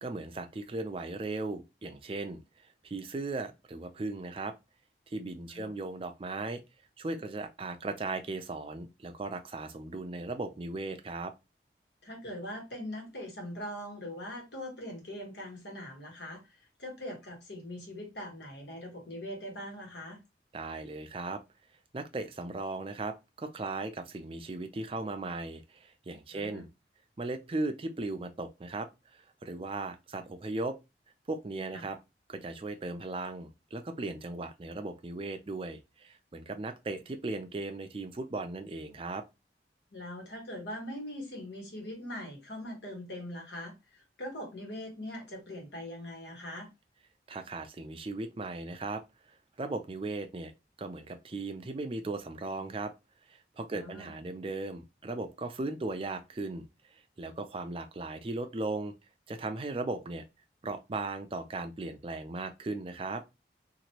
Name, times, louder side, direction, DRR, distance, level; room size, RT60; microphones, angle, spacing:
voice 1, 0.0-2.4 2.8-4.5 5.1-6.6 7.0-11.3 20.5-21.4 21.9-26.7 27.2-30.8 31.3-32.0 32.3-39.2 47.3-49.0 49.3-50.5 50.8-52.9 53.3-56.7 57.2-58.9 59.3-60.2 60.6-63.2, right 2 dB, 30° right, 0.4 m, -37 dB
voice 2, 12.0-20.2 26.3-26.6 31.7-31.8 39.9-46.7 53.7-54.1, left 1 dB, 85° left, 1.4 m, -42 dB
2.9 x 2.5 x 2.8 m
head